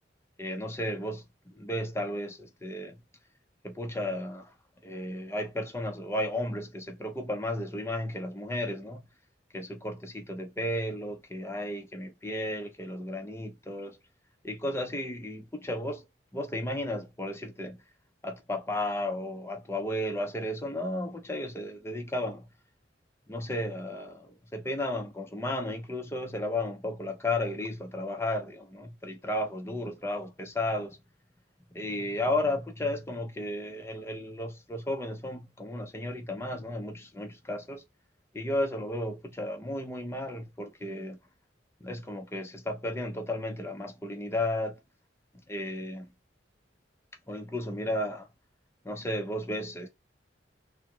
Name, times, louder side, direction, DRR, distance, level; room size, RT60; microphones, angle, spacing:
voice 1, 0.4-3.0 3.6-4.5 4.8-9.0 9.5-14.0 14.4-16.1 16.3-17.8 18.2-22.5 23.3-31.0 31.7-37.8 38.3-41.2 41.8-44.8 45.5-46.1 47.3-48.3 48.8-49.9, left 1 dB, 15° left, 0.8 m, -34 dB
3.6 x 2.2 x 4.4 m
head